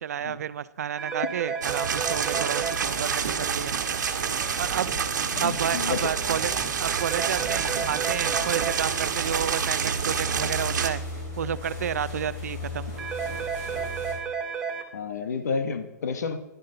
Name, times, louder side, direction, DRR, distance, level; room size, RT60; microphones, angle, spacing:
voice 1, 0.0-3.8 4.6-4.9 5.4-6.5 6.8-11.0 11.4-12.9, right 9 dB, 60° right, 17 dB, 0.5 m, -31 dB
sound 1, 1.0-2.8 7.0-8.8 13.0-14.8, right 6 dB, 5° right, 0.6 m, -32 dB
sound 2, 1.6-10.9, right 6 dB, 85° right, 1.4 m, -28 dB
sound 3, 2.6-14.1, equal, 20° left, 3.3 m, -39 dB
voice 2, 5.3-6.1 14.9-16.4, left 5 dB, 65° left, 10 dB, 1.0 m, -30 dB
11.0 x 11.0 x 3.9 m, 0.97 s
hypercardioid pair, 175°, 10 cm